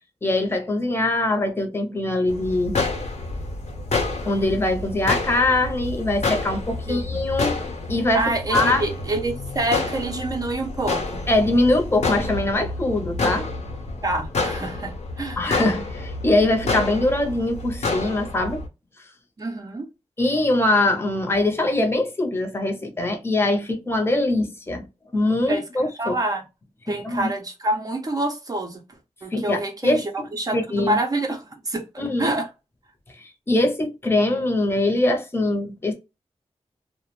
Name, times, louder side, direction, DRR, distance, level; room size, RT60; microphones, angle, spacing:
voice 1, 0.2-2.8 4.2-7.6 7.9-8.8 11.3-13.5 15.4-18.6 20.2-24.9 25.1-26.1 26.9-27.3 29.3-30.0 30.5-31.0 32.0-32.3 33.2-35.9, left 2 dB, 20° left, 0.6 m, -22 dB
sound 1, 2.3-18.7, left 3 dB, 85° left, 0.8 m, -29 dB
voice 2, 8.1-11.2 14.0-15.4 19.4-19.9 25.5-26.4 26.9-28.8 29.2-31.8 32.2-32.5, right 2 dB, 35° right, 0.5 m, -27 dB
2.3 x 2.1 x 3.0 m
wide cardioid pair, 160°, 11 cm